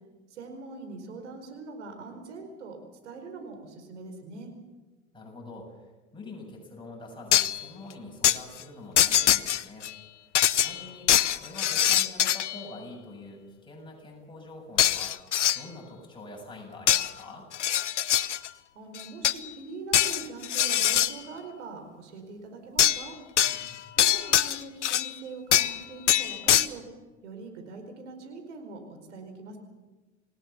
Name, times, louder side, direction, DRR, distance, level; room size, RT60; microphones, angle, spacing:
voice 1, 0.3-2.8 3.0-4.5 18.7-23.2 24.0-26.8 27.2-29.6, right 3 dB, 80° right, 5 dB, 5.0 m, -42 dB
voice 2, 5.1-9.9 10.1-15.2 15.5-17.5 23.4-23.8, left 2 dB, 15° left, -1 dB, 7.5 m, -45 dB
sound 1, 7.3-7.6 8.2-8.4 9.0-9.9 10.3-12.6 14.8-15.6 16.9-17.1 17.5-18.5 18.9-19.5 19.9-21.1 22.8-23.1 23.4-25.1 25.5-25.8 26.1-26.7, left 11 dB, 85° left, 0.8 m, -23 dB
27.5 x 17.5 x 7.1 m, 1.2 s
hypercardioid pair, 80°, 35 cm